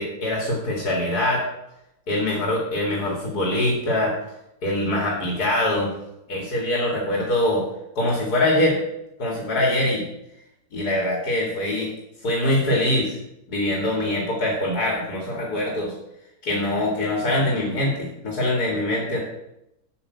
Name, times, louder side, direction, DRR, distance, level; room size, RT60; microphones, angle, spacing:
voice 1, 0.0-1.4 2.1-4.1 4.6-5.9 6.3-7.6 7.9-8.8 9.2-10.0 10.7-11.9 12.2-13.2 13.5-15.9 16.4-19.2, left 1 dB, 75° left, -2 dB, 2.9 m, -23 dB
8.7 x 6.1 x 8.3 m, 0.86 s
omnidirectional pair, 1.7 m